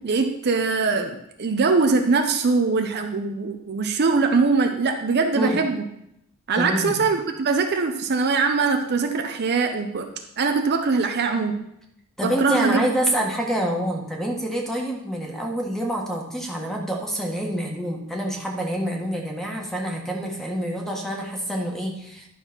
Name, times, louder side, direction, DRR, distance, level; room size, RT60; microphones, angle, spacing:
voice 1, 0.0-5.8 6.5-10.1 10.4-11.6 12.2-12.8, right 4 dB, 50° right, 5 dB, 0.6 m, -22 dB
voice 2, 6.5-7.0 12.2-22.3, right 1 dB, ahead, -1 dB, 1.5 m, -27 dB
11.0 x 4.1 x 6.0 m, 0.79 s
head